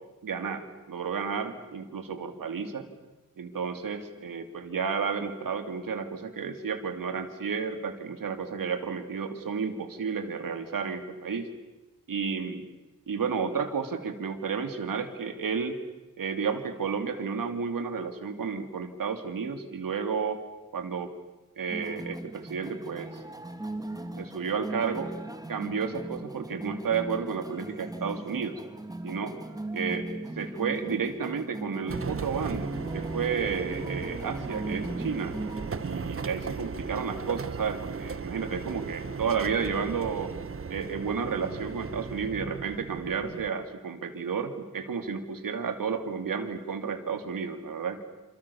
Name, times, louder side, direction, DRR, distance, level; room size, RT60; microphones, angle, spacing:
voice 1, 0.2-2.9 3.4-11.5 12.1-12.6 13.1-15.8 16.2-20.4 20.7-21.1 21.6-23.2 24.2-25.1 25.5-28.6 29.0-29.4 29.7-30.1 30.4-35.4 35.8-40.3 40.7-48.0, right 6 dB, 85° right, 7 dB, 2.9 m, -32 dB
sound 1, 21.7-35.7, right 2 dB, 10° right, 2.2 m, -38 dB
sound 2, 31.9-43.5, right 5 dB, 40° right, 1.3 m, -37 dB
28.0 x 27.5 x 7.2 m, 1.1 s
wide cardioid pair, 125°, 32 cm